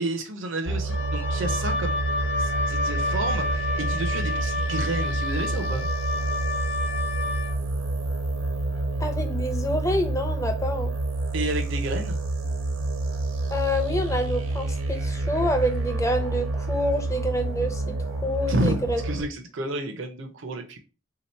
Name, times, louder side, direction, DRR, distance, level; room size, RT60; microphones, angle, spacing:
voice 1, 0.0-2.0 2.4-5.9 11.3-12.2 18.5-18.7 19.0-20.8, right 1 dB, 65° right, 0.6 m, -30 dB
sound 1, 0.7-19.2, right 2 dB, 90° right, 1.0 m, -28 dB
Wind instrument woodwind instrument, 0.9-7.6, left 3 dB, 55° left, 0.6 m, -30 dB
voice 2, 9.0-10.9 13.5-17.8 18.2-19.0, equal, 15° left, 0.5 m, -27 dB
3.5 x 2.8 x 4.3 m
head